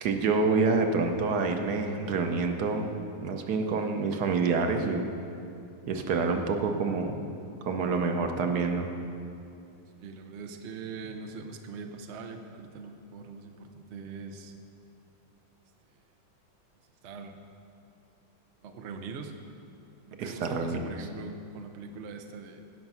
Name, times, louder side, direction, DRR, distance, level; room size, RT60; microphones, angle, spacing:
voice 1, 0.0-2.9 3.2-5.1 5.9-7.3 7.6-8.9 20.2-20.9, right 4 dB, 60° right, 5 dB, 1.2 m, -27 dB
voice 2, 10.0-14.5 17.0-17.4 18.6-19.3 20.0-22.6, right 4 dB, 80° right, 5 dB, 0.6 m, -42 dB
17.0 x 5.9 x 5.6 m, 2.7 s
omnidirectional pair, 2.2 m